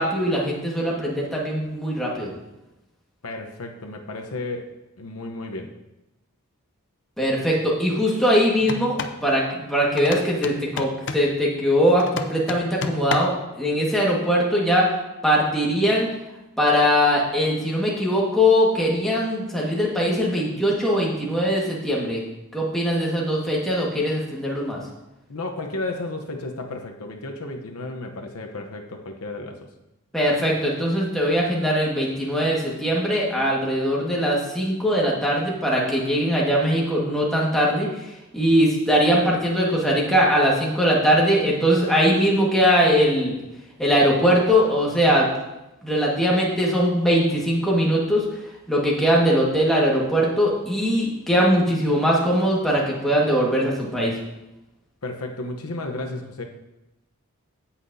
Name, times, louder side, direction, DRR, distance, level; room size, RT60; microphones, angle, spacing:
voice 1, 0.0-2.3 7.2-14.9 15.2-16.1 16.6-22.2 22.5-24.8 30.1-38.1 38.3-43.4 43.8-45.3 45.8-48.2 48.7-54.2, equal, ahead, -4 dB, 1.6 m, -21 dB
voice 2, 3.2-4.7 5.0-5.7 25.3-29.7 55.0-56.4, left 2 dB, 75° left, 3 dB, 0.9 m, -33 dB
sound 1, 8.6-9.2 10.0-11.3 12.0-13.5, left 4 dB, 55° left, 0.6 m, -31 dB
16.5 x 5.8 x 2.7 m, 0.96 s
head